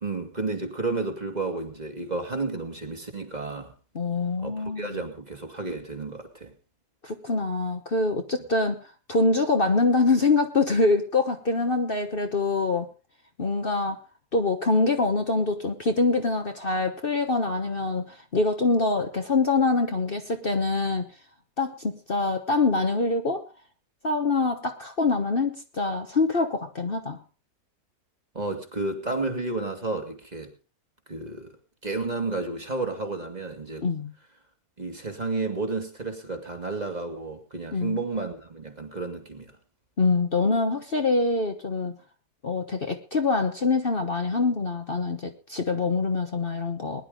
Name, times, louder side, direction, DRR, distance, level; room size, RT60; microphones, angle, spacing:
voice 1, 0.0-3.7 4.4-6.5 28.3-30.5 31.1-31.5 31.8-33.9 34.8-39.5, right 3 dB, 25° right, 5 dB, 2.2 m, -31 dB
voice 2, 3.9-5.0 7.0-8.8 9.1-12.9 13.4-14.0 14.3-21.1 21.6-23.4 24.0-27.2 33.8-34.1 37.7-38.0 40.0-42.0 42.4-47.1, left 3 dB, 40° left, 6 dB, 1.3 m, -25 dB
20.5 x 11.0 x 3.7 m, 0.33 s
omnidirectional pair, 1.6 m